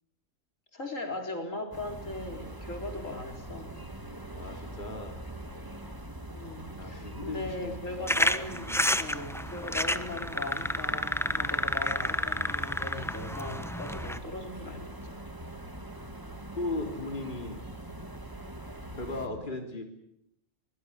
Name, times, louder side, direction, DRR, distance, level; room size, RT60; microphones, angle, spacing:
voice 1, 0.7-3.8 6.3-15.2 19.2-19.5, left 2 dB, 70° left, 4 dB, 4.6 m, -39 dB
sound 1, 1.7-19.3, right 1 dB, 15° right, 2.1 m, -43 dB
voice 2, 4.4-5.2 6.8-7.8 16.6-17.6 18.9-19.8, left 2 dB, 35° left, 4 dB, 3.5 m, -36 dB
sound 2, 8.1-14.2, equal, ahead, 1.0 m, -30 dB
23.5 x 22.0 x 9.9 m, 0.80 s
omnidirectional pair, 1.4 m